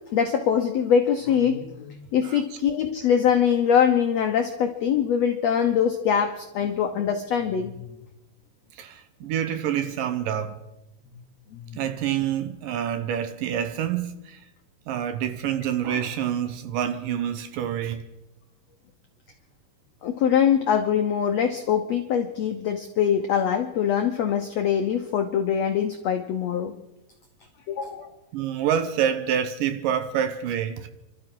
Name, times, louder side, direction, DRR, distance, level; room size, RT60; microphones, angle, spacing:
voice 1, 0.1-7.8 11.7-11.8 20.0-26.7 27.7-28.1, left 8 dB, 90° left, 1.4 m, -23 dB
voice 2, 8.8-10.6 11.8-14.4 14.9-18.0 28.3-30.9, right 9 dB, 75° right, 2.3 m, -27 dB
30.0 x 13.0 x 3.8 m
omnidirectional pair, 4.3 m